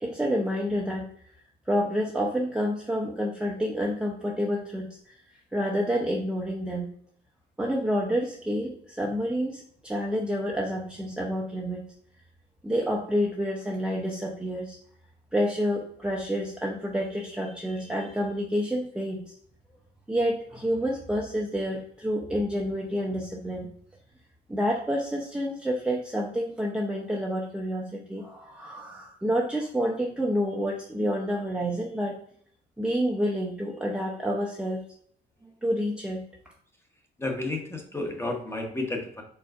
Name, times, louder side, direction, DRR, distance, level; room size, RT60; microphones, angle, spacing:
voice 1, 0.0-1.1 1.7-5.2 5.5-6.9 7.6-11.9 12.6-14.8 15.3-19.3 20.1-23.7 24.5-32.2 32.8-34.8 35.6-36.2, equal, 5° right, -1 dB, 0.6 m, -28 dB
voice 2, 37.2-39.2, left 2 dB, 10° left, 2 dB, 0.9 m, -31 dB
4.4 x 3.7 x 2.4 m, 0.62 s
cardioid pair, 90°, 20 cm